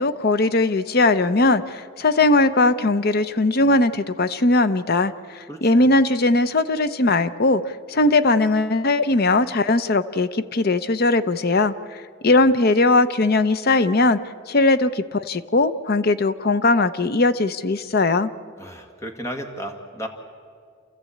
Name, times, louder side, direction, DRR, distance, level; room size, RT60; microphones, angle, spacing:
voice 1, 0.0-5.1 5.6-7.6 7.9-11.7 12.2-14.2 14.5-18.3, left 2 dB, 50° left, 12 dB, 0.7 m, -19 dB
voice 2, 5.5-5.9 18.6-20.1, equal, 15° left, 4 dB, 2.0 m, -34 dB
28.5 x 14.0 x 8.6 m, 2.2 s
head